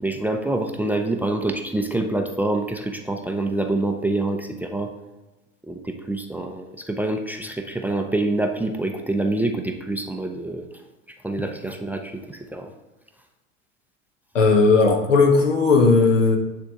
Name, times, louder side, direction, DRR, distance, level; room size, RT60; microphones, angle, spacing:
voice 1, 0.0-4.9 5.7-10.7 11.2-12.7, right 2 dB, 5° right, 4 dB, 0.5 m, -26 dB
voice 2, 14.3-16.4, left 4 dB, 85° left, 2 dB, 1.4 m, -16 dB
9.9 x 3.4 x 3.7 m, 1.1 s
hypercardioid pair, 90°, 36 cm